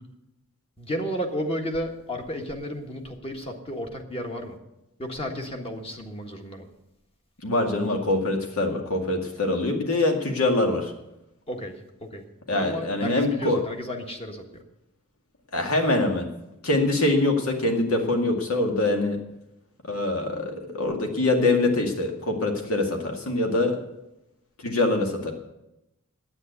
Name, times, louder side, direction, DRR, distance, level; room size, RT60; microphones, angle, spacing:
voice 1, 0.8-4.6 5.0-6.7 11.5-11.7 12.0-12.2 12.5-14.6, equal, 25° left, 3 dB, 1.5 m, -33 dB
voice 2, 7.4-10.9 12.5-13.6 15.5-16.3 16.6-19.2 19.8-23.8 24.6-25.3, left 2 dB, 75° left, 3 dB, 2.1 m, -24 dB
9.9 x 8.7 x 8.1 m, 0.91 s
head